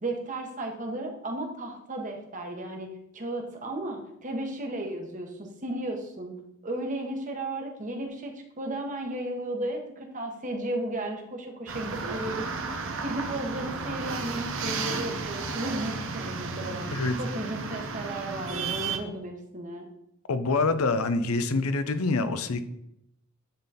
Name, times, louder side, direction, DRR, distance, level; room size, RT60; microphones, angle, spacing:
voice 1, 0.0-2.9 3.1-6.3 6.6-12.5 13.0-16.9 17.2-19.9, right 1 dB, 35° right, 2 dB, 1.3 m, -34 dB
sound 1, 11.7-19.0, right 4 dB, 60° right, 0.9 m, -33 dB
voice 2, 20.3-22.6, left 3 dB, 80° left, 11 dB, 0.7 m, -26 dB
10.0 x 4.1 x 4.2 m, 0.78 s
head